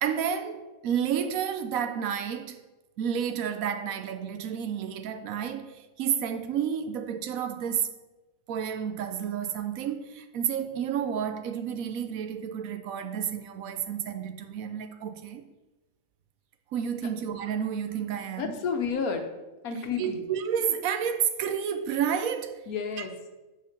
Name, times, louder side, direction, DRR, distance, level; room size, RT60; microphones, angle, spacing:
voice 1, 0.0-2.6 3.0-7.9 8.5-15.4 16.7-18.6 20.0-22.7, right 8 dB, 75° right, 1.1 m, -30 dB
voice 2, 18.4-19.3 19.6-20.3 22.7-23.3, left 5 dB, 85° left, 1.4 m, -31 dB
7.2 x 4.8 x 5.9 m
omnidirectional pair, 1.5 m